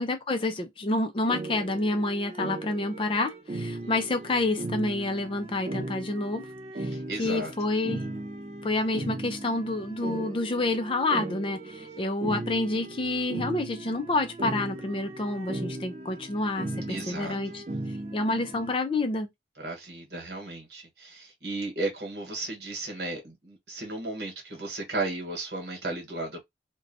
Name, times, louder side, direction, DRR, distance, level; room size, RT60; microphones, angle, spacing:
voice 1, 0.0-6.5 6.8-8.0 8.6-17.6 18.1-19.3, left 2 dB, 30° left, 0.4 m, -28 dB
sound 1, 1.3-18.7, right 2 dB, 35° right, 0.4 m, -37 dB
voice 2, 6.9-7.5 11.7-12.1 16.9-17.6 19.6-26.4, right 2 dB, 60° right, 1.2 m, -35 dB
2.6 x 2.2 x 2.6 m
head